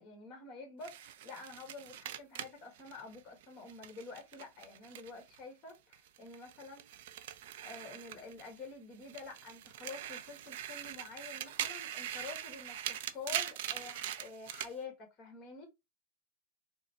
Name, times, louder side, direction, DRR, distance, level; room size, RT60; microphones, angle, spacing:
voice 1, 0.0-7.0 7.6-15.7, left 3 dB, 35° left, 1.7 m, -48 dB
sound 1, 0.8-5.4 5.7-8.7 9.0-14.7, right 11 dB, 65° right, 0.5 m, -42 dB
3.7 x 2.2 x 4.4 m
hypercardioid pair, 125°, 0 cm